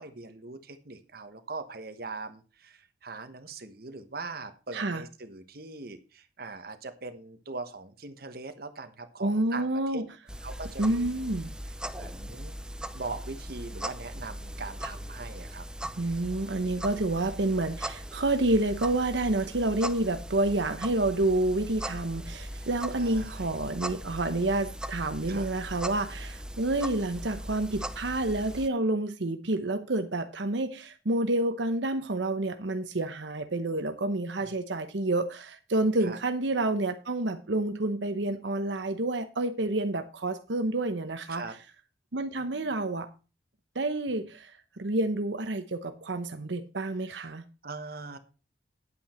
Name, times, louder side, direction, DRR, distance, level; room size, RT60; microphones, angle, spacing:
voice 1, 0.0-10.0 10.4-11.3 11.7-12.5 12.9-15.7 22.5-22.7 23.0-23.5 25.3-25.5 34.4-34.5 36.0-36.2 41.3-41.6 47.1-47.3 47.6-48.2, right 3 dB, 55° right, 1.2 m, -41 dB
voice 2, 9.2-10.0 10.8-11.6 16.0-41.4 42.1-43.1 43.7-47.4, right 2 dB, 80° right, 0.9 m, -29 dB
sound 1, 10.3-28.7, right 1 dB, 5° right, 0.5 m, -39 dB
9.8 x 8.5 x 4.4 m
head